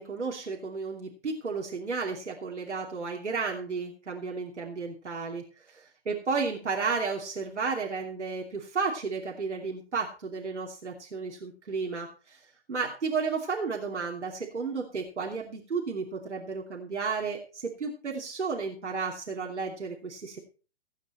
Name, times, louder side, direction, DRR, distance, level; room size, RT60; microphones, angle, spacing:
voice 1, 0.0-12.4 12.7-20.4, right 4 dB, 90° right, 0 dB, 2.9 m, -33 dB
16.5 x 9.2 x 4.4 m, 0.36 s
hypercardioid pair, 130°, 34 cm